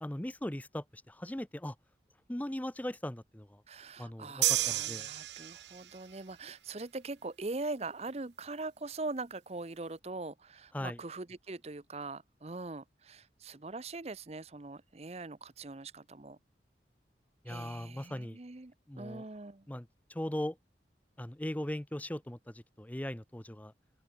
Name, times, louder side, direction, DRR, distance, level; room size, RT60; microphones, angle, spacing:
voice 1, 0.0-1.7 2.3-3.6 4.0-5.1 10.7-11.0 17.4-18.4 18.9-19.2 19.7-20.6 21.2-23.7, left 1 dB, 10° left, 0.6 m, -39 dB
voice 2, 3.7-16.4 17.5-19.6, right 3 dB, 35° right, 0.8 m, -42 dB
sound 1, 4.4-6.0, right 14 dB, 80° right, 1.3 m, -31 dB
open air
head